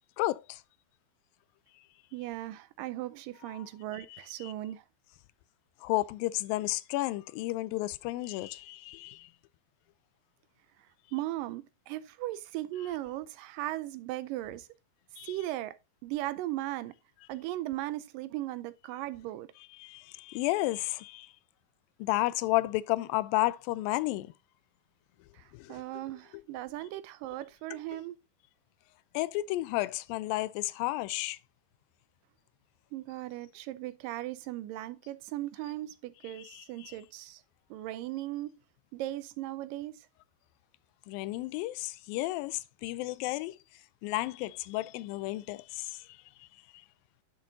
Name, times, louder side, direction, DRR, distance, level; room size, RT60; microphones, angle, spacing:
voice 1, 0.2-0.6 3.5-3.6 4.1-4.5 5.8-9.3 15.2-15.3 19.8-21.3 22.0-24.3 25.5-25.8 29.1-31.4 36.3-37.0 41.1-43.6 44.0-46.0 46.4-46.5, left 18 dB, 80° left, 2.2 m, -32 dB
voice 2, 2.1-4.9 11.1-14.7 15.2-15.8 16.0-16.9 17.3-19.5 25.3-28.2 32.9-37.4 37.7-38.5 38.9-40.1, right 15 dB, 80° right, 2.0 m, -37 dB
10.5 x 6.8 x 2.7 m
omnidirectional pair, 4.2 m